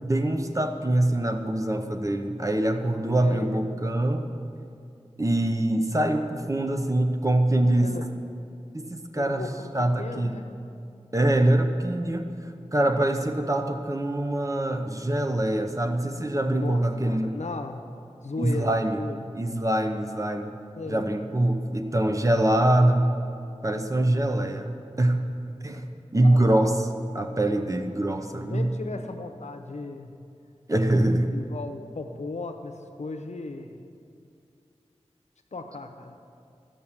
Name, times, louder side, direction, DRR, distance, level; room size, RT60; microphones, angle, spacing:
voice 1, 0.1-4.3 5.2-8.0 8.7-9.5 9.7-10.4 11.1-12.3 12.7-17.3 18.4-19.0 19.3-20.5 20.9-23.1 23.6-25.2 25.6-25.9 26.1-26.9 27.1-28.7 30.7-31.3, right 1 dB, 30° right, 6 dB, 0.8 m, -24 dB
voice 2, 3.2-3.5 7.8-8.0 9.2-9.7 10.0-10.5 16.4-16.8 17.1-17.8 18.2-19.2 20.8-21.1 26.2-26.6 28.5-30.1 31.3-33.8 35.5-36.2, left 3 dB, 75° left, 5 dB, 0.8 m, -36 dB
12.5 x 5.5 x 7.2 m, 2.5 s
wide cardioid pair, 65°, 12 cm